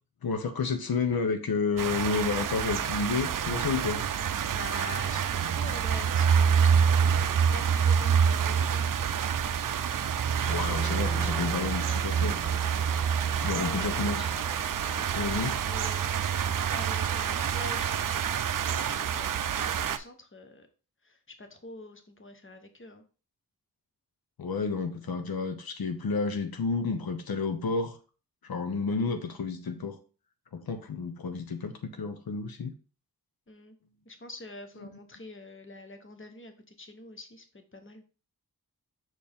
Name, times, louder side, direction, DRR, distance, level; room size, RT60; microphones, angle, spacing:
voice 1, 0.2-4.0 10.5-12.4 13.4-14.3 15.2-15.5 24.4-28.0 28.4-30.0 30.5-32.7, left 4 dB, 85° left, 8 dB, 0.8 m, -31 dB
sound 1, 1.8-20.0, right 7 dB, 65° right, 0.5 m, -27 dB
voice 2, 4.4-8.9 13.3-14.0 14.9-18.3 18.7-20.7 21.0-23.0 33.5-33.8 34.0-38.0, left 2 dB, 35° left, 7 dB, 1.1 m, -45 dB
sound 2, 10.5-16.6, left 3 dB, 15° left, 0.6 m, -44 dB
6.2 x 4.3 x 3.5 m, 0.36 s
wide cardioid pair, 90°, 35 cm